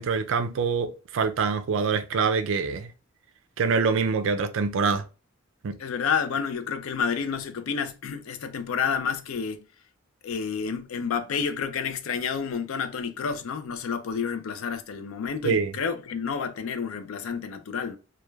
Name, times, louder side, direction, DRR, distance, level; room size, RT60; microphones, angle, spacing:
voice 1, 0.0-2.9 3.6-5.0 5.6-5.8 15.4-15.7, right 5 dB, 60° right, 0.4 m, -25 dB
voice 2, 5.8-9.6 10.2-18.0, left 6 dB, 70° left, 0.4 m, -30 dB
3.1 x 2.2 x 2.2 m
head